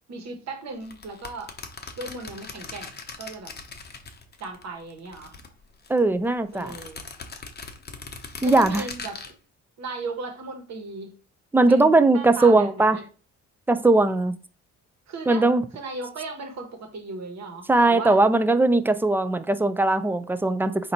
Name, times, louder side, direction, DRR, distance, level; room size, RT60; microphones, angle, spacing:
voice 1, 0.1-1.5 2.0-3.5 4.4-5.3 6.5-7.0 8.4-9.3 9.8-11.2 11.7-13.0 15.1-15.5 15.7-18.2, right 3 dB, 60° right, 1.3 m, -36 dB
sound 1, 0.8-4.6 4.9-6.0 6.5-9.3, left 4 dB, 35° left, 0.9 m, -40 dB
voice 2, 5.9-6.7 8.4-8.8 11.5-13.0 13.7-14.3 15.3-15.6 17.7-20.9, right 2 dB, 5° right, 0.4 m, -19 dB
4.0 x 2.7 x 4.3 m
cardioid pair, 90°, 30 cm